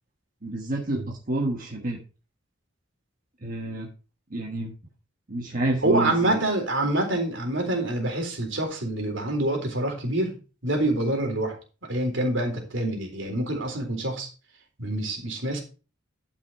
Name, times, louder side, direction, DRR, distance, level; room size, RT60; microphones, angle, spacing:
voice 1, 0.4-2.0 3.4-3.9 4.3-4.7 5.3-6.4, right 2 dB, 45° right, 0 dB, 1.4 m, -29 dB
voice 2, 5.8-11.6 11.9-14.3 14.8-15.6, right 1 dB, 65° right, 3 dB, 3.8 m, -26 dB
12.0 x 5.8 x 4.5 m, 0.34 s
head